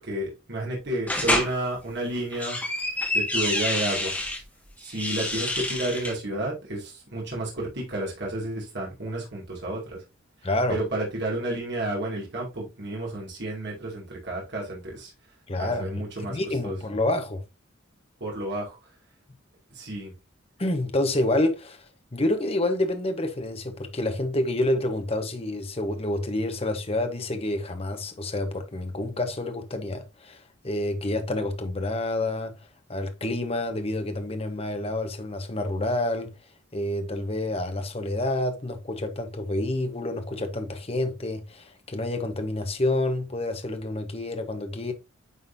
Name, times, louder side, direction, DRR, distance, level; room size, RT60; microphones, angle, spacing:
voice 1, 0.0-2.6 3.1-4.1 4.8-10.0 10.4-15.1 15.6-16.8 18.2-18.9 19.7-20.1, right 1 dB, 55° right, 2.4 m, -31 dB
sound 1, 1.1-1.5 2.2-4.4 4.9-6.1, left 1 dB, 10° left, 1.7 m, -27 dB
voice 2, 10.4-10.8 15.5-17.4 20.6-21.8 22.1-32.5 32.9-36.3 36.7-44.9, left 1 dB, 30° left, 1.0 m, -28 dB
9.2 x 4.0 x 2.7 m
head